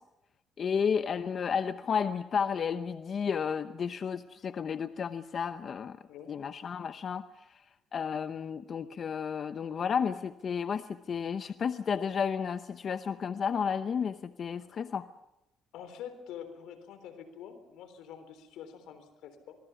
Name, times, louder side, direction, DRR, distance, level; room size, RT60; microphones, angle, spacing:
voice 1, 0.6-6.0 6.3-7.2 7.5-7.6 7.9-15.1, left 6 dB, 50° left, 11 dB, 0.8 m, -32 dB
voice 2, 15.7-19.6, left 8 dB, 85° left, 10 dB, 3.6 m, -46 dB
24.0 x 22.5 x 7.0 m, 0.90 s
cardioid pair, 95°, 0 cm